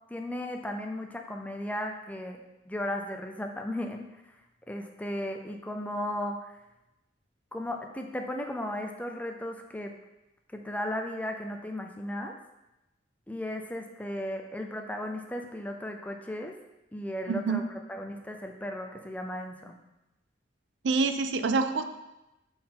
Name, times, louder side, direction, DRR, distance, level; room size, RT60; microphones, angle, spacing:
voice 1, 0.1-2.4 2.7-4.1 4.7-6.5 7.5-10.0 10.5-12.3 13.3-16.5 16.9-19.8, left 1 dB, 10° left, 3 dB, 0.5 m, -35 dB
voice 2, 17.3-17.6 20.8-21.8, right 4 dB, 70° right, 9 dB, 0.4 m, -26 dB
7.3 x 4.3 x 3.8 m, 0.96 s
head